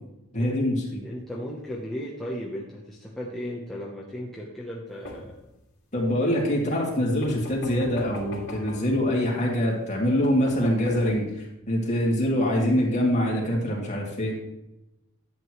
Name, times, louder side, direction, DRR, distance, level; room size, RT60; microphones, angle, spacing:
voice 1, 0.3-1.0 5.9-14.3, left 1 dB, 30° left, -3 dB, 2.5 m, -24 dB
voice 2, 1.0-5.4, equal, ahead, -5 dB, 0.9 m, -35 dB
sound 1, 5.0-5.5 7.2-8.9 9.8-9.9 10.2-11.2, left 1 dB, 55° left, 2.4 m, -40 dB
11.0 x 7.7 x 3.2 m, 0.94 s
head